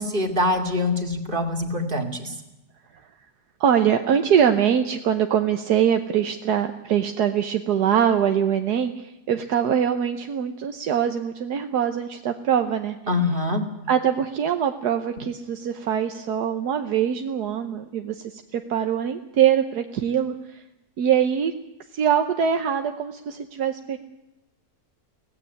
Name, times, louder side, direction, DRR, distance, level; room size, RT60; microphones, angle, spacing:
voice 1, 0.0-2.3 13.1-13.6, left 2 dB, 30° right, 5 dB, 2.5 m, -24 dB
voice 2, 3.6-13.0 13.9-20.6 21.0-21.5 21.9-24.0, right 8 dB, 75° right, 7 dB, 1.5 m, -23 dB
17.5 x 16.0 x 9.9 m, 0.94 s
omnidirectional pair, 1.7 m